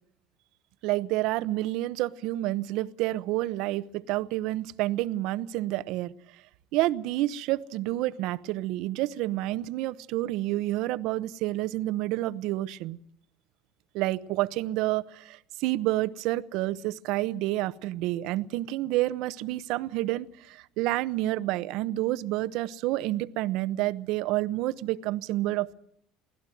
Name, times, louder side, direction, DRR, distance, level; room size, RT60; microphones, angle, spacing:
voice 1, 0.8-6.1 6.7-13.0 13.9-25.7, right 16 dB, 70° right, 15 dB, 0.9 m, -29 dB
24.0 x 16.5 x 9.2 m, 0.68 s
supercardioid pair, 90°, 0 cm